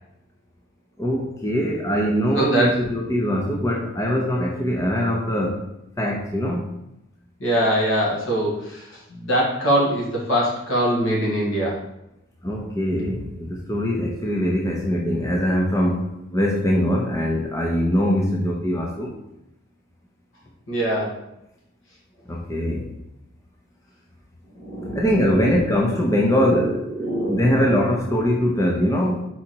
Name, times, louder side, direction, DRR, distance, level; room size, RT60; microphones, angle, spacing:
voice 1, 1.0-5.6 6.0-6.7 12.4-19.1 22.3-22.9 24.9-26.8 27.3-29.2, equal, 15° left, -1 dB, 0.6 m, -22 dB
voice 2, 2.4-2.7 7.4-8.8 9.1-11.8 20.7-21.1 24.6-25.3 26.4-26.6 27.0-27.8, right 1 dB, 70° left, -4 dB, 2.1 m, -23 dB
4.9 x 4.3 x 4.4 m, 0.87 s
head